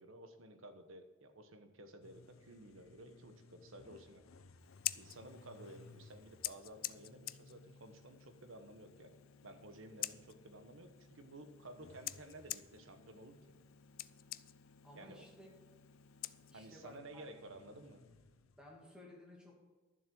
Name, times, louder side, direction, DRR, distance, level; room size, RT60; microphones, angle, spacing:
voice 1, 0.0-4.2 5.0-9.2 9.4-13.4 14.9-15.3 16.5-18.0, right 1 dB, 65° right, 7 dB, 1.2 m, -54 dB
sound 1, 2.0-18.8, left 3 dB, 75° left, 0.7 m, -62 dB
Scissors, 4.6-17.0, left 15 dB, 40° left, 0.3 m, -48 dB
voice 2, 14.8-15.5 16.5-17.3 18.5-19.5, left 1 dB, 5° right, -2 dB, 2.4 m, -56 dB
12.0 x 7.2 x 6.2 m, 1.2 s
head